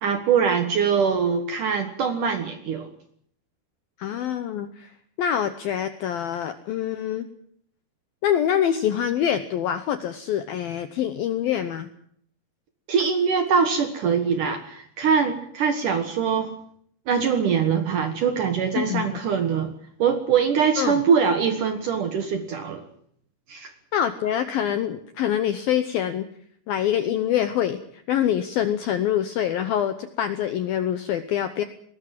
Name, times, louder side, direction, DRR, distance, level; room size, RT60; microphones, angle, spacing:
voice 1, 0.0-2.9 12.9-16.5 17.1-19.7 20.0-22.8 23.5-23.7, right 6 dB, 60° right, 8 dB, 2.3 m, -23 dB
voice 2, 4.0-4.9 5.2-7.3 8.2-11.9 18.8-19.2 20.8-21.0 23.9-26.3 26.7-31.6, left 10 dB, 75° left, 10 dB, 2.2 m, -25 dB
20.5 x 19.0 x 7.7 m, 0.65 s
omnidirectional pair, 5.5 m